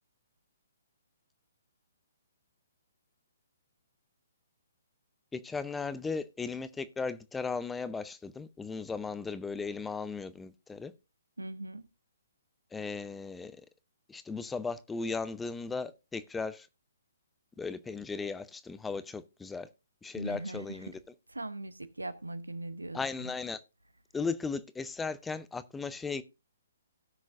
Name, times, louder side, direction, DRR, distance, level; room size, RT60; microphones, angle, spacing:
voice 1, 5.3-10.9 12.7-13.6 14.1-16.7 17.6-19.7 20.0-20.9 22.9-23.6 24.1-26.2, left 4 dB, 10° left, 0.5 m, -36 dB
voice 2, 11.4-11.8 20.1-21.0 21.3-23.3, right 2 dB, 85° right, 0.8 m, -40 dB
17.5 x 6.2 x 2.5 m
figure-of-eight pair, 130°, 0 cm